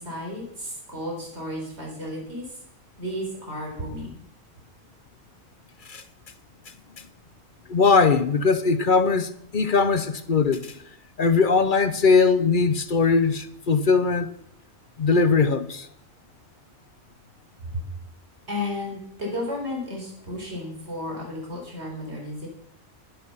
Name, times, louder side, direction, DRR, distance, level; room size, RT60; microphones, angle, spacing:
voice 1, 0.0-2.6 3.0-4.2 17.7-17.8 18.5-22.5, left 1 dB, 50° right, 4.6 m, -33 dB
voice 2, 7.7-10.8 11.2-14.3 15.0-15.9, left 4 dB, 45° left, 0.8 m, -20 dB
12.0 x 11.0 x 5.6 m
omnidirectional pair, 1.4 m